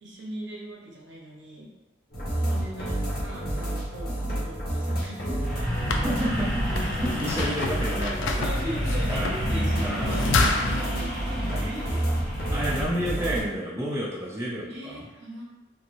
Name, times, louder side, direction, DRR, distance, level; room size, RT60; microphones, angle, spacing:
voice 1, 0.0-1.7 2.1-5.4 8.4-12.0 14.7-15.4, equal, 65° right, -2 dB, 0.7 m, -39 dB
sound 1, 2.1-13.4, right 1 dB, 50° left, 0.8 m, -30 dB
sound 2, 5.4-12.9, equal, 30° right, 0.8 m, -31 dB
sound 3, 5.7-10.8, left 3 dB, 80° left, 0.4 m, -29 dB
voice 2, 6.0-6.5 7.2-8.5 9.1-9.4 9.8-10.3 11.5-11.7 12.5-15.1, right 1 dB, 15° right, -7 dB, 0.4 m, -30 dB
3.0 x 2.6 x 2.9 m, 1.1 s
head